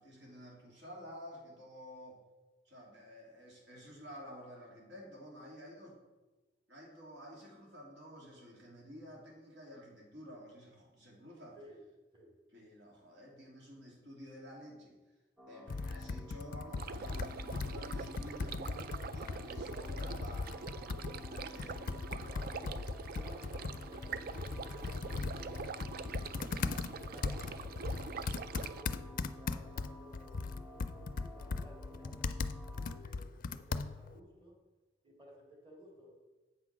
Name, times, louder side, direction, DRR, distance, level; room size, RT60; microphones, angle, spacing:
voice 1, 0.0-2.2 2.6-6.0 6.7-11.6 12.5-15.0 15.5-20.7 21.1-21.8 28.9-29.1 32.8-33.0, equal, 85° right, -2 dB, 2.8 m, -51 dB
sound 1, 15.4-33.0, left 1 dB, 10° right, 1.1 m, -54 dB
Computer keyboard, 15.7-34.2, left 4 dB, 50° left, 0.4 m, -39 dB
sound 2, 16.8-28.8, right 5 dB, 55° right, 0.4 m, -45 dB
voice 2, 22.2-22.8 23.1-26.5 26.9-27.8 28.2-32.2 32.8-34.6 35.0-36.2, equal, 30° right, -1 dB, 2.1 m, -56 dB
8.1 x 6.1 x 5.9 m, 1.2 s
head